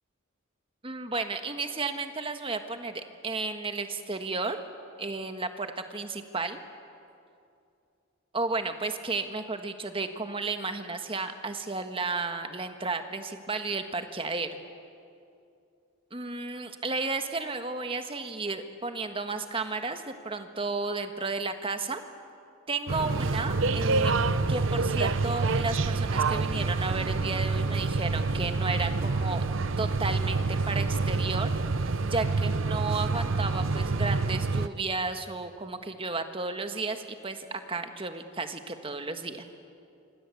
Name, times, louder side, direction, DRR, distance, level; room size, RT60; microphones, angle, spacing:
voice 1, 0.8-4.6 5.0-6.6 8.3-14.6 16.1-22.0 22.7-24.2 24.5-29.4 29.8-39.4, right 3 dB, 25° right, 7 dB, 1.5 m, -33 dB
sound 1, 22.9-34.7, right 3 dB, 65° right, 0.9 m, -27 dB
26.5 x 26.0 x 8.4 m, 2.5 s
head